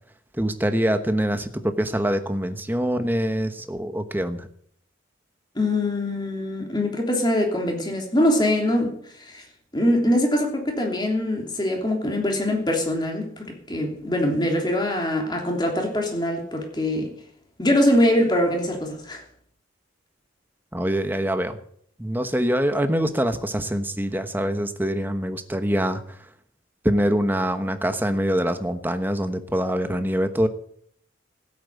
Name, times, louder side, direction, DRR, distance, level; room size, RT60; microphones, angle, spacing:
voice 1, 0.4-4.5 20.7-21.6 22.0-26.0 26.8-30.5, equal, 10° right, 8 dB, 1.1 m, -24 dB
voice 2, 5.5-9.4 9.7-17.1 17.6-19.2, left 1 dB, 20° left, 1 dB, 3.2 m, -23 dB
15.5 x 8.8 x 8.2 m, 0.65 s
head